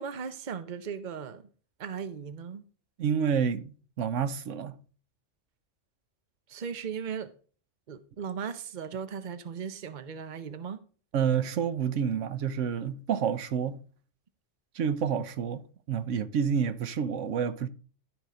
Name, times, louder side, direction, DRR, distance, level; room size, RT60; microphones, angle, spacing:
voice 1, 0.0-1.4 1.8-2.6 6.5-7.3 7.9-10.8, right 7 dB, 45° right, 0.9 m, -37 dB
voice 2, 3.0-4.8 11.1-13.8 14.7-15.6 15.9-17.7, right 7 dB, 85° right, 1.1 m, -29 dB
12.5 x 5.0 x 5.0 m
omnidirectional pair, 1.2 m